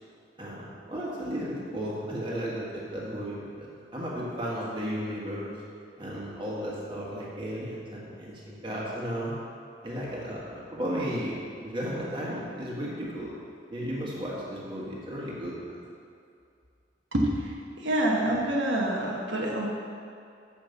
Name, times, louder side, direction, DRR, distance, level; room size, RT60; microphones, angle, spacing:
voice 1, 0.4-5.5 6.0-9.4 9.8-11.4 11.6-13.3 13.7-15.8, equal, 25° right, -6 dB, 1.6 m, -34 dB
voice 2, 17.1-19.7, right 1 dB, 80° right, -2 dB, 1.1 m, -27 dB
6.9 x 5.2 x 6.9 m, 2.4 s
head